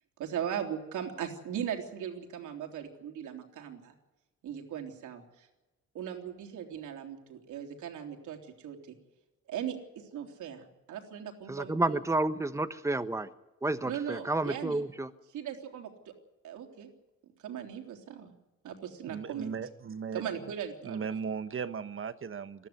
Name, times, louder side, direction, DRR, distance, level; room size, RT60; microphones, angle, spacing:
voice 1, 0.2-3.9 4.4-5.5 5.9-8.9 9.5-9.8 10.1-12.0 13.8-14.8 15.3-16.1 16.4-16.9 17.4-18.3 18.6-19.5 20.1-21.1, right 9 dB, 80° right, 3 dB, 3.6 m, -38 dB
voice 2, 11.5-13.3 13.6-15.1, right 2 dB, 10° right, 11 dB, 1.2 m, -30 dB
voice 3, 19.1-20.5 20.8-22.7, right 6 dB, 45° right, 12 dB, 1.3 m, -37 dB
21.0 x 14.0 x 9.7 m, 1.1 s
cardioid pair, 90°, 30 cm